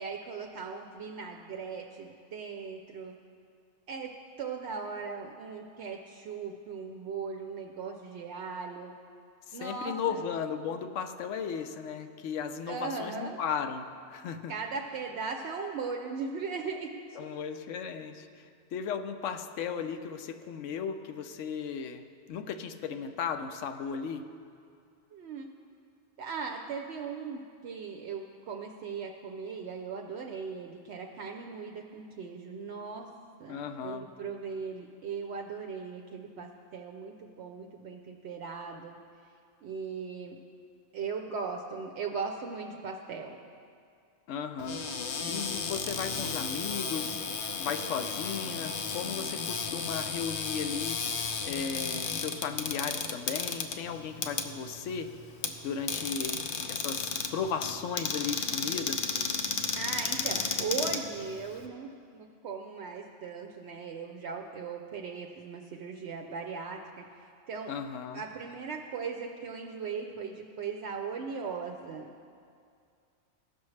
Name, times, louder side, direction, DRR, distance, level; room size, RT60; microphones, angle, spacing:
voice 1, 0.0-3.2 3.9-4.1 4.4-8.9 9.5-10.2 12.7-13.4 14.5-16.9 25.1-25.5 26.2-33.1 33.4-39.0 39.6-40.4 40.9-43.4 59.8-67.7 68.1-72.1, right 5 dB, 70° right, 1 dB, 0.8 m, -38 dB
voice 2, 9.5-14.5 17.2-18.4 18.7-24.3 33.5-34.1 44.3-44.8 45.3-47.2 47.6-51.0 51.4-55.1 55.6-59.0 67.7-68.2, left 6 dB, 80° left, 7 dB, 0.9 m, -36 dB
Cupboard open or close, 44.6-61.7, left 5 dB, 55° left, 0.6 m, -34 dB
16.0 x 6.0 x 3.2 m, 2.3 s
omnidirectional pair, 1.3 m